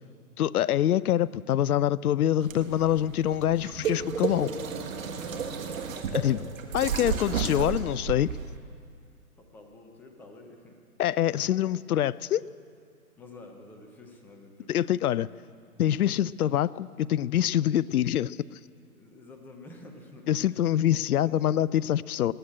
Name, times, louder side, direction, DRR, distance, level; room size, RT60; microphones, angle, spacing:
voice 1, 0.4-4.5 6.1-6.5 6.7-8.3 11.0-12.4 14.7-15.3 15.8-18.4 20.3-22.3, left 11 dB, 75° left, 21 dB, 0.5 m, -25 dB
sound 1, 2.4-8.6, right 6 dB, 60° right, 1.7 m, -32 dB
voice 2, 4.9-6.1 9.4-10.8 11.4-11.6 13.2-14.7 18.9-20.6 20.9-21.3, left 2 dB, 5° left, 3 dB, 0.5 m, -49 dB
19.0 x 8.0 x 8.6 m, 2.3 s
hypercardioid pair, 130°, 45 cm